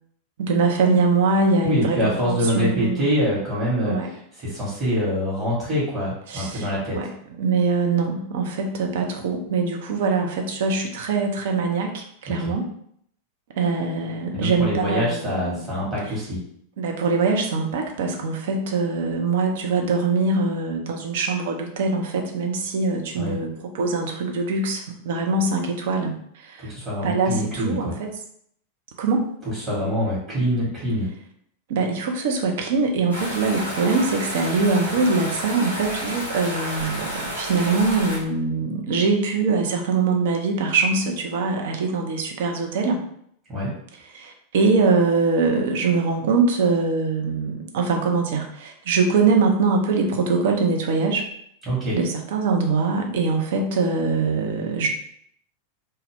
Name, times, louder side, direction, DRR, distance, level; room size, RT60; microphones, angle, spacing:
voice 1, 0.4-3.2 3.8-4.1 6.3-7.1 7.4-12.7 13.6-15.7 16.8-26.7 27.0-28.1 29.0-29.3 31.7-43.0 44.1-51.2 51.9-54.9, right 4 dB, 55° right, 3 dB, 0.4 m, -23 dB
voice 2, 1.6-4.0 4.4-7.0 12.3-12.6 14.3-16.4 23.2-23.4 26.6-28.0 29.5-31.1 43.5-43.7 51.7-52.0, equal, 20° right, -8 dB, 1.0 m, -25 dB
sound 1, 33.1-38.2, equal, 90° right, 1.1 m, -31 dB
2.2 x 2.0 x 3.3 m, 0.68 s
figure-of-eight pair, 90°, 0 cm